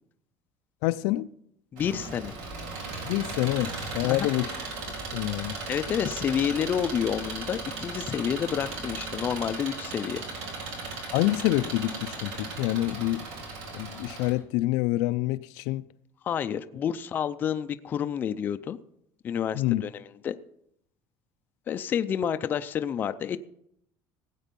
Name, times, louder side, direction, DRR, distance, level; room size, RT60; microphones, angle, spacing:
voice 1, 0.8-1.3 3.1-4.5 4.9-5.6 11.1-13.3 13.7-15.8 19.5-19.8, left 17 dB, 80° left, 0.5 m, -27 dB
voice 2, 1.7-2.4 4.0-4.3 5.7-10.2 16.2-18.8 19.2-20.3 21.7-23.5, left 8 dB, 25° left, 0.5 m, -29 dB
Engine, 1.8-14.3, right 3 dB, 85° right, 3.8 m, -37 dB
17.0 x 8.2 x 5.3 m
cardioid pair, 170°, 7 cm